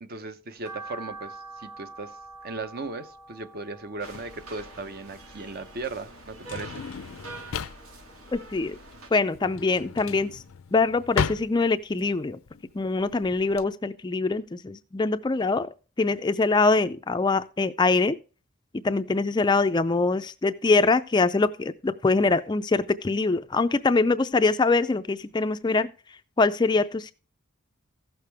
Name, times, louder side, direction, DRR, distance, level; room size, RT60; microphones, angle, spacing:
voice 1, 0.0-2.2 2.4-6.8, right 3 dB, 45° right, 0.8 m, -37 dB
sound 1, 0.6-6.9 7.3-8.5 8.8-10.2 10.6-10.7 11.2-11.3 11.5-11.6, right 3 dB, 15° right, 0.9 m, -46 dB
Drawer open or close, 4.0-13.6, left 6 dB, 75° left, 0.5 m, -35 dB
sound 2, 4.0-9.1, right 2 dB, 85° right, 2.0 m, -45 dB
voice 2, 8.3-8.8 9.1-10.4 10.7-12.4 12.7-18.2 18.8-25.9 26.4-27.1, left 3 dB, 20° left, 0.4 m, -24 dB
15.5 x 6.6 x 3.3 m
head